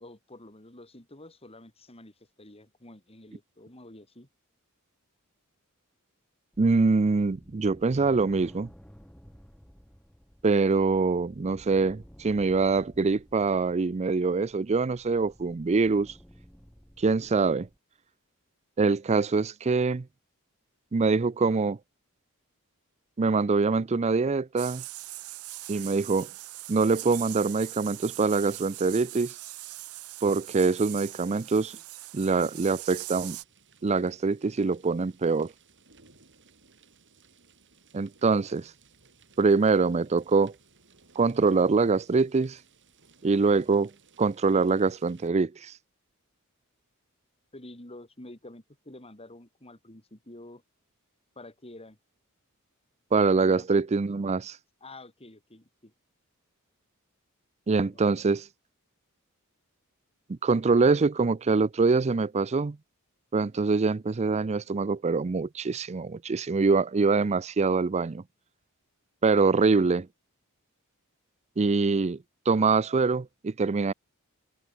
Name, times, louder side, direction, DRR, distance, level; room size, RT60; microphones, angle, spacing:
voice 1, 0.0-4.3 47.5-50.6 51.4-52.0 53.3-53.7 54.8-55.9 57.9-58.0, left 1 dB, 25° left, 4.0 m, -48 dB
sound 1, 6.5-17.8, equal, 5° left, 2.4 m, -54 dB
voice 2, 6.6-8.7 10.4-16.1 17.0-17.7 18.8-20.1 20.9-21.8 23.2-24.8 25.7-26.3 26.7-29.4 30.2-31.8 32.1-33.4 33.8-35.5 37.9-38.7 39.4-40.5 41.2-42.6 43.2-43.9 44.2-45.7 53.1-54.6 57.7-58.5 60.3-62.8 63.3-68.2 69.2-70.1 71.6-72.2 72.5-73.9, right 4 dB, 30° right, 0.4 m, -24 dB
sound 2, 24.6-33.4, right 17 dB, 80° right, 0.9 m, -41 dB
sound 3, 32.2-45.3, right 5 dB, 55° right, 7.5 m, -60 dB
head